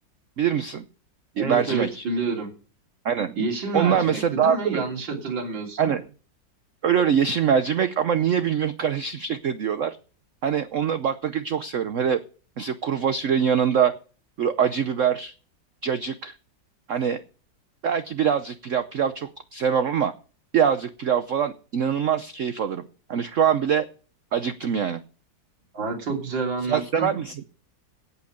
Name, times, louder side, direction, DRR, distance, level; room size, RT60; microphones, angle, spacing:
voice 1, 0.4-0.8 1.4-2.0 3.0-3.3 3.7-4.8 5.8-6.0 6.8-10.0 10.4-12.2 12.6-13.9 14.4-15.3 15.8-16.3 16.9-17.2 17.8-20.1 20.5-22.8 23.1-23.9 24.3-25.0 26.7-27.3, right 8 dB, 55° right, 11 dB, 0.9 m, -23 dB
voice 2, 1.3-2.5 3.3-5.9 25.7-27.1, right 4 dB, 90° right, 2 dB, 3.9 m, -28 dB
17.0 x 5.8 x 6.6 m, 0.39 s
omnidirectional pair, 2.0 m